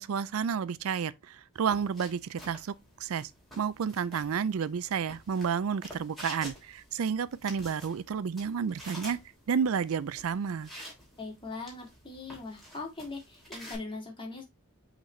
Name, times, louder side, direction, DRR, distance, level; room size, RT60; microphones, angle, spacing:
voice 1, 0.0-3.3 3.6-9.2 9.5-10.7, right 6 dB, 65° right, 0.4 m, -31 dB
sound 1, 1.5-13.7, equal, ahead, 3.1 m, -49 dB
voice 2, 11.2-14.4, left 3 dB, 25° left, 2.1 m, -40 dB
7.9 x 3.9 x 3.2 m
head